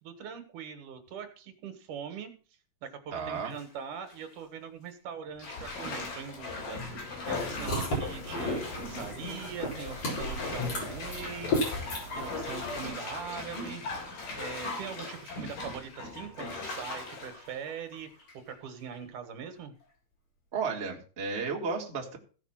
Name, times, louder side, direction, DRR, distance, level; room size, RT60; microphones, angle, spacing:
voice 1, 0.0-2.3 2.8-13.8 14.4-18.1 18.5-19.7, right 7 dB, 70° right, 8 dB, 3.0 m, -42 dB
voice 2, 3.1-3.6 7.5-7.9 20.5-22.2, right 5 dB, 25° right, 0 dB, 1.8 m, -34 dB
Bathtub (filling or washing), 3.2-3.6 4.1-4.2 5.4-18.5 18.9-19.0, left 3 dB, 85° left, 5.2 m, -38 dB
sound 1, 7.3-12.9, left 1 dB, 45° left, 4.9 m, -35 dB
15.5 x 5.9 x 5.8 m, 0.38 s
omnidirectional pair, 3.8 m